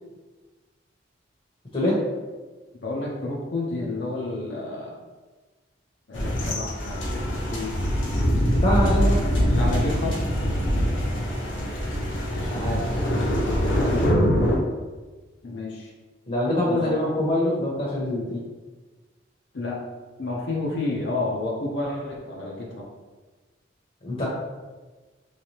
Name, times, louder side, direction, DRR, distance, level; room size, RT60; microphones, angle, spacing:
voice 1, 2.7-5.0 6.1-7.7 9.5-10.2 14.4-14.6 15.4-15.9 16.7-17.1 19.5-19.8 20.2-22.9 24.2-24.3, left 2 dB, 65° left, -3 dB, 0.6 m, -30 dB
sound 1, 6.1-14.6, equal, 80° left, 1.0 m, -23 dB
voice 2, 8.6-9.2 12.5-12.9 13.6-14.0 16.3-18.4 24.0-24.3, left 1 dB, 35° left, -5 dB, 0.8 m, -24 dB
3.2 x 3.2 x 2.8 m, 1.3 s
head